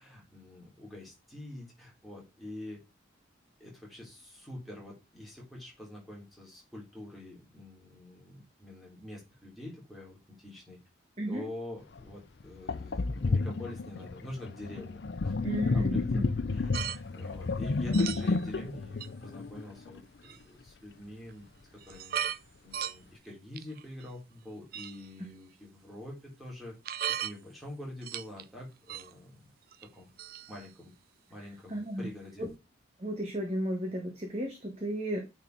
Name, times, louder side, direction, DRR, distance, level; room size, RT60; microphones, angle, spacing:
voice 1, 0.0-2.8 3.6-10.8 11.3-15.3 15.7-16.2 16.5-21.4 21.9-22.2 22.6-26.8 27.2-29.3 29.9-30.1 30.5-30.9 31.3-32.4, left 1 dB, ahead, -3 dB, 3.1 m, -46 dB
Sink (filling or washing), 12.0-12.1 12.7-20.0, left 3 dB, 55° left, 0.5 m, -31 dB
voice 2, 15.4-16.2 31.7-32.0 32.4-32.5 33.0-35.2, right 1 dB, 30° right, 1 dB, 1.5 m, -34 dB
sound 1, 16.7-17.0 17.9-18.4 19.0-19.1 20.2-20.4 21.3-21.4 21.8-22.4 22.7-23.0 23.6-24.0 24.7-25.1 26.9-27.3 28.0-28.4 28.9-29.1 29.7-29.9 30.2-30.7, right 10 dB, 50° right, 0.3 m, -36 dB
9.3 x 4.3 x 4.0 m, 0.25 s
head